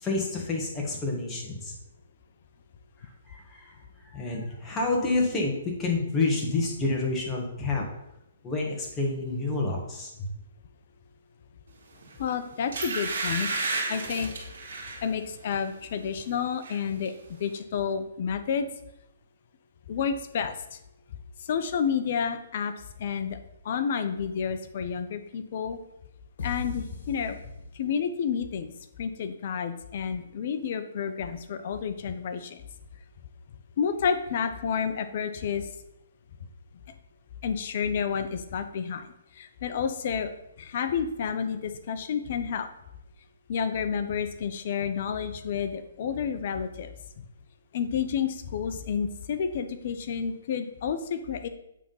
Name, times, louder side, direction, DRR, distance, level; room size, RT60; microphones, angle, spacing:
voice 1, 0.0-1.7 3.3-3.8 4.1-5.5 5.8-7.8 8.4-10.3, left 3 dB, 15° left, -2 dB, 1.7 m, -28 dB
sound 1, 12.0-12.2 12.7-15.0 15.5-15.7 16.0-16.8 17.0-17.1, right 3 dB, 70° right, 2.3 m, -32 dB
voice 2, 12.2-13.5 13.9-14.3 15.0-17.1 17.4-18.7 19.9-20.8 21.5-22.7 23.0-23.4 23.6-25.8 26.4-27.4 27.7-28.7 29.0-32.6 33.8-35.7 37.4-39.1 39.4-40.3 40.6-42.7 43.5-46.9 47.7-51.5, left 7 dB, 50° left, 9 dB, 0.7 m, -30 dB
sound 2, 26.4-28.2, left 2 dB, 70° left, 2.0 m, -38 dB
8.4 x 3.7 x 5.6 m, 0.84 s
hypercardioid pair, 155°, 0 cm